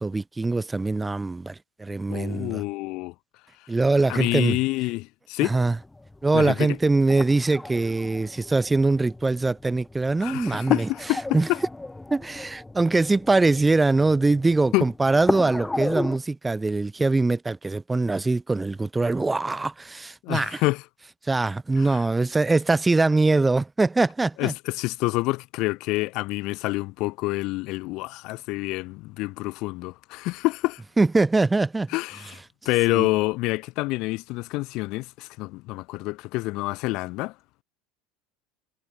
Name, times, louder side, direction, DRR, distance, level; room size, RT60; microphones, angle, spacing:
voice 1, 0.0-2.6 3.7-4.6 5.4-5.8 6.2-10.9 11.3-11.5 12.1-20.6 21.2-24.5 31.0-31.9 32.9-33.1, right 3 dB, 10° right, 1.2 m, -23 dB
voice 2, 2.1-3.1 4.1-5.5 6.3-6.8 10.2-11.2 11.5-11.6 14.7-14.8 20.2-20.8 21.8-22.0 24.4-30.8 31.9-32.4 32.6-37.3, left 22 dB, 60° left, 0.7 m, -27 dB
sound 1, 5.5-16.2, left 2 dB, 10° left, 4.5 m, -35 dB
supercardioid pair, 130°, 0 cm